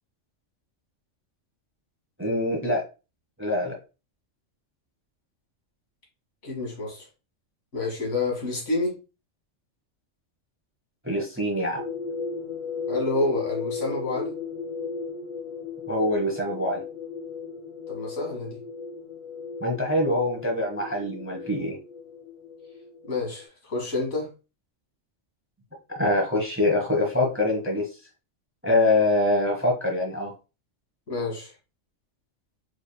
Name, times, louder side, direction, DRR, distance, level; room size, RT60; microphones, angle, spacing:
voice 1, 2.2-2.9 3.4-3.7 11.0-11.8 15.9-16.8 19.6-21.8 25.9-27.9 28.6-30.3, left 1 dB, 10° right, 1.0 m, -24 dB
voice 2, 6.4-7.1 7.7-9.0 12.9-14.4 17.9-18.6 23.1-24.3 31.1-31.5, left 2 dB, 65° left, 2.0 m, -28 dB
sound 1, 11.8-23.4, left 5 dB, 45° left, 1.0 m, -36 dB
4.8 x 3.6 x 2.2 m
omnidirectional pair, 1.3 m